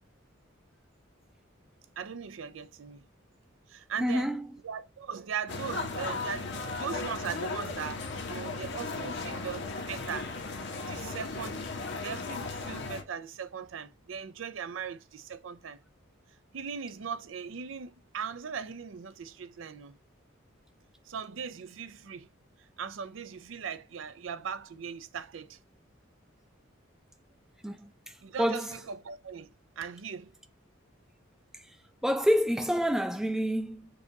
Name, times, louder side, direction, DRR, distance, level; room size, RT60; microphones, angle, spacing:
voice 1, 2.0-3.1 3.7-4.4 4.6-10.3 10.9-11.7 12.0-15.8 16.5-20.0 21.1-22.3 22.6-25.6 28.2-30.3, right 6 dB, 70° right, 0.5 m, -39 dB
voice 2, 4.0-4.4 27.6-27.9 28.4-28.7 32.0-33.9, equal, 5° right, 0.4 m, -27 dB
sound 1, 5.5-13.0, left 3 dB, 60° left, 0.9 m, -36 dB
4.9 x 2.3 x 2.8 m
head